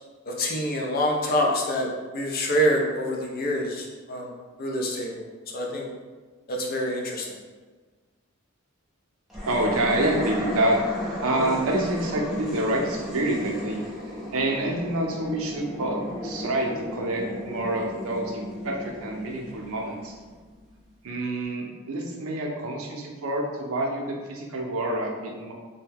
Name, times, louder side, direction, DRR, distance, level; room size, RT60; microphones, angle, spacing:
voice 1, 0.2-4.3 4.6-5.3 5.5-5.9 6.5-7.4, equal, 40° left, 0 dB, 0.4 m, -26 dB
sound 1, 9.3-20.7, left 1 dB, ahead, 0.6 m, -34 dB
voice 2, 9.5-10.8 11.2-13.8 14.3-20.1 21.0-25.5, right 1 dB, 75° right, 0 dB, 0.5 m, -27 dB
2.7 x 2.1 x 3.5 m, 1.4 s
head